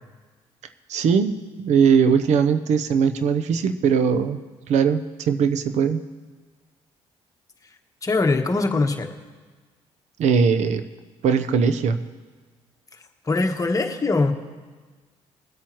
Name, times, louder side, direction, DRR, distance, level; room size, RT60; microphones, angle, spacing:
voice 1, 0.9-4.4 4.7-6.0 10.2-10.8 11.2-12.0, right 6 dB, 70° right, 10 dB, 0.8 m, -20 dB
voice 2, 8.0-9.1 13.3-14.3, left 3 dB, 30° left, 4 dB, 1.2 m, -22 dB
22.0 x 8.5 x 3.1 m, 1.4 s
supercardioid pair, 75°, 12 cm